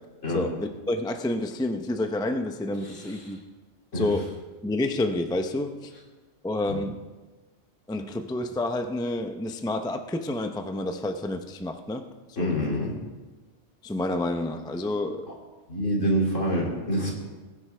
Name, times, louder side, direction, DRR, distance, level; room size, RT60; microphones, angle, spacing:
voice 1, 0.3-3.4 3.9-4.4 4.6-5.9 6.4-7.0 7.9-12.0 12.4-12.5 13.8-15.3, left 2 dB, 5° left, 6 dB, 0.4 m, -29 dB
voice 2, 2.8-3.2 3.9-4.1 6.7-6.8 12.4-12.9 15.7-17.1, equal, 70° left, -2 dB, 3.1 m, -26 dB
20.5 x 10.0 x 3.4 m, 1.3 s
omnidirectional pair, 1.3 m